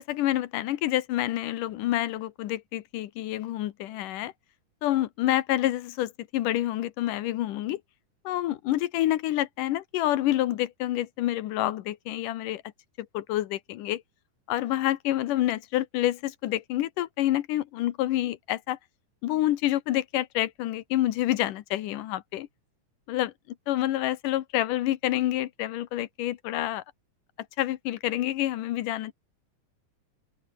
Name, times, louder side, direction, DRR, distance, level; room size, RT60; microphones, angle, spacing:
voice 1, 0.0-4.3 4.8-7.8 8.3-12.6 13.1-14.0 14.5-18.8 19.2-22.5 23.1-23.3 23.7-26.8 27.6-29.1, left 14 dB, 75° left, 2.5 m, -28 dB
open air
omnidirectional pair, 4.0 m